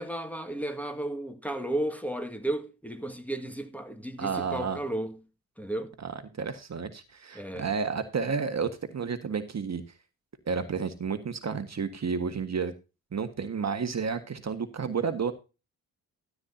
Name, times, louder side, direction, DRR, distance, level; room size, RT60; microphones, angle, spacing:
voice 1, 0.0-5.2 5.6-5.9 7.3-7.7, right 1 dB, 5° left, 1.9 m, -33 dB
voice 2, 4.2-4.8 6.0-6.1 6.4-9.8 10.5-12.7 13.1-15.3, right 5 dB, 35° right, 1.7 m, -31 dB
14.0 x 9.7 x 2.8 m
hypercardioid pair, 45°, 46 cm